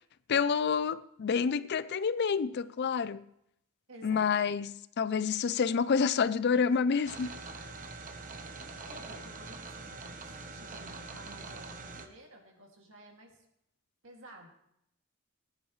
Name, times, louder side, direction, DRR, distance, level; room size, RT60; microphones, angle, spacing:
voice 1, 0.3-3.2 4.0-4.7 5.0-7.3, left 6 dB, 50° left, 0.4 m, -28 dB
voice 2, 3.9-4.3 8.3-13.4 14.0-14.5, right 1 dB, 60° right, 2.4 m, -53 dB
sound 1, 7.1-12.1, right 3 dB, 40° right, 1.0 m, -44 dB
19.0 x 10.5 x 3.2 m
head